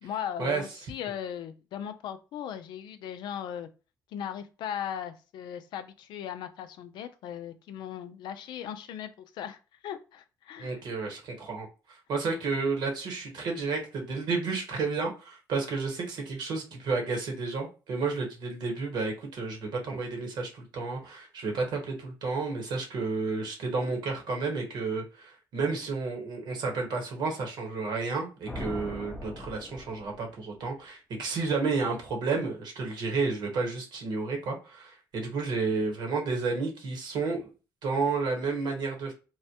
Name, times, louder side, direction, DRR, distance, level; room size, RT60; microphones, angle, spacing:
voice 1, 0.0-3.7 4.1-9.1 9.3-10.8, left 9 dB, 75° left, 11 dB, 0.4 m, -38 dB
voice 2, 10.6-37.5 37.8-39.1, right 4 dB, 70° right, 2 dB, 1.2 m, -31 dB
sound 1, 28.5-30.4, left 1 dB, 20° left, 0.6 m, -40 dB
3.1 x 2.2 x 2.8 m, 0.32 s
supercardioid pair, 75°, 8 cm